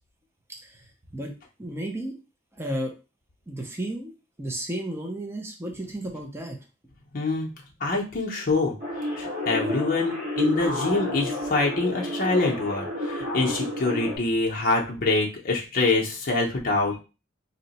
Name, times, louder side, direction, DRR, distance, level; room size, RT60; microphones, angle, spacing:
voice 1, 0.6-1.3 1.6-2.1 2.5-2.9 3.5-4.1 4.4-6.6, right 1 dB, 15° right, 1 dB, 0.5 m, -33 dB
voice 2, 7.1-7.5 7.8-8.7 9.2-17.0, left 3 dB, 50° left, -1 dB, 0.6 m, -25 dB
sound 1, 8.8-14.2, equal, 45° right, 1.3 m, -30 dB
2.8 x 2.1 x 4.0 m, 0.30 s
head